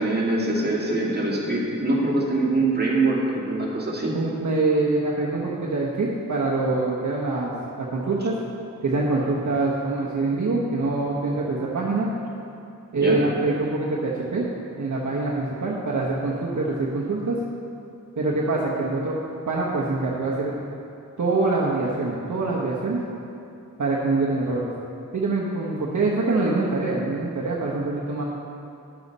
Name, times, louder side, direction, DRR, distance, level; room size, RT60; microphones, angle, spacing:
voice 1, 0.0-4.2 12.9-13.2, right 2 dB, 30° right, -5 dB, 2.3 m, -23 dB
voice 2, 4.1-8.4 8.8-12.1 12.9-14.5 14.8-17.4 18.1-19.1 19.5-20.5 21.2-23.0 23.8-24.7 25.1-28.2, right 3 dB, 60° right, -4 dB, 1.1 m, -24 dB
11.5 x 7.1 x 4.1 m, 2.7 s
wide cardioid pair, 65°, 33 cm